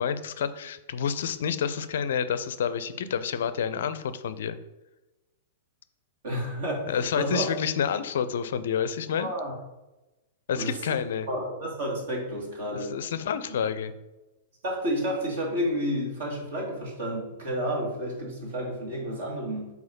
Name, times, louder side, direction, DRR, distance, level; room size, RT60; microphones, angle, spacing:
voice 1, 0.0-4.6 6.8-9.3 10.5-11.3 12.7-13.9, left 7 dB, 55° left, 13 dB, 0.4 m, -29 dB
voice 2, 6.2-7.4 9.2-9.5 10.5-11.0 11.3-12.9 13.5-13.6 14.6-19.7, equal, 55° right, -1 dB, 2.0 m, -31 dB
4.8 x 4.0 x 5.4 m, 1.0 s
figure-of-eight pair, 100°, 0 cm